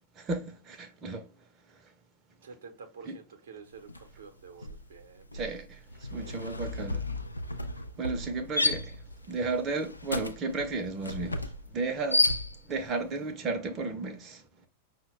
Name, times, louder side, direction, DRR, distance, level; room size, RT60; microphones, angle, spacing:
voice 1, 0.2-1.3 3.1-3.2 5.3-7.1 8.0-9.0 9.3-12.3 12.7-14.4, right 3 dB, 30° right, 0.6 m, -34 dB
voice 2, 2.4-5.5 6.1-6.4, right 5 dB, 65° right, 0.7 m, -49 dB
sound 1, 3.9-4.2 4.5-12.9, left 2 dB, 80° left, 0.3 m, -32 dB
5.5 x 2.1 x 2.9 m
figure-of-eight pair, 90°, 0 cm